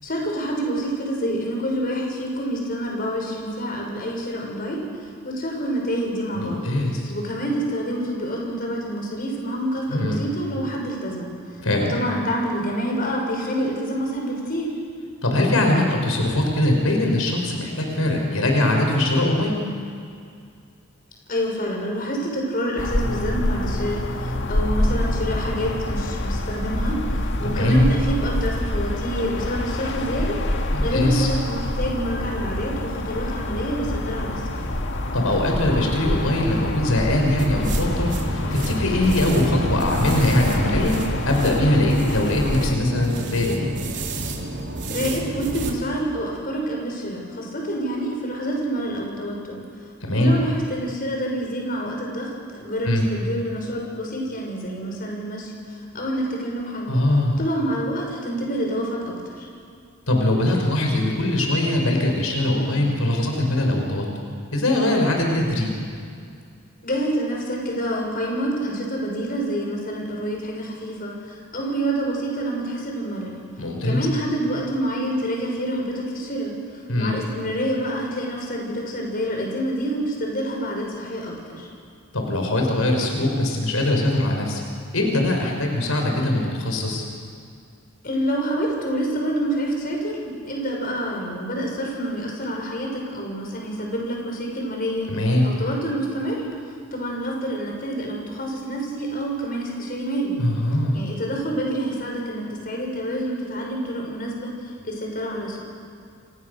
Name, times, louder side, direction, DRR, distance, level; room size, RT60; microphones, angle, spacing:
voice 1, 0.0-6.7 7.1-14.8 21.3-34.6 44.9-56.9 57.4-59.5 66.8-73.4 73.8-81.7 88.0-95.1 95.4-96.4 96.9-100.4 100.9-105.6, right 1 dB, 45° left, 0 dB, 6.3 m, -27 dB
voice 2, 6.3-7.1 9.9-10.2 11.6-12.0 15.2-19.6 27.6-27.8 30.7-31.3 35.1-43.7 50.0-50.4 52.8-53.0 56.9-57.4 60.1-64.1 64.5-65.7 73.6-74.1 76.9-77.2 82.1-84.6 84.9-87.1 95.1-95.5 100.4-101.0, left 1 dB, 90° left, 1 dB, 5.3 m, -21 dB
sound 1, 22.8-42.7, left 1 dB, 60° left, 1.9 m, -26 dB
sound 2, 37.4-45.8, right 1 dB, 55° right, 3.4 m, -30 dB
28.5 x 28.0 x 6.8 m, 2.3 s
head